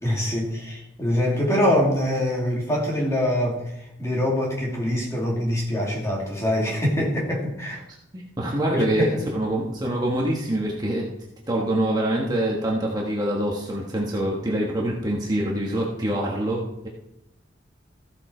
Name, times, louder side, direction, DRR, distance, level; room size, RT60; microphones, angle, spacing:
voice 1, 0.0-3.6 4.0-7.8 8.7-9.2, left 1 dB, 15° left, -3 dB, 2.6 m, -24 dB
voice 2, 8.1-11.1 11.5-16.9, right 1 dB, 20° right, -3 dB, 1.4 m, -25 dB
14.5 x 7.4 x 4.4 m, 0.86 s
head